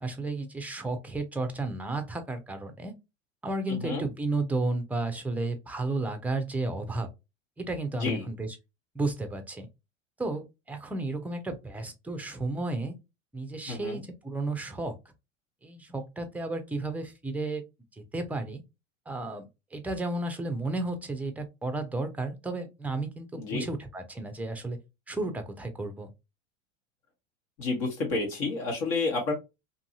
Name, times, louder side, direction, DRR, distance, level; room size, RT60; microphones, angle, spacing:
voice 1, 0.0-2.9 3.4-7.1 7.6-8.5 8.9-9.7 10.2-13.0 13.3-15.0 15.6-17.6 17.9-18.6 19.1-19.5 19.7-24.8 25.1-26.1, right 2 dB, 5° right, 0.4 m, -33 dB
voice 2, 3.7-4.1 7.9-8.3 13.7-14.0 23.3-23.7 27.6-29.3, left 3 dB, 55° left, 1.2 m, -30 dB
2.7 x 2.6 x 2.6 m
hypercardioid pair, 95°, 39 cm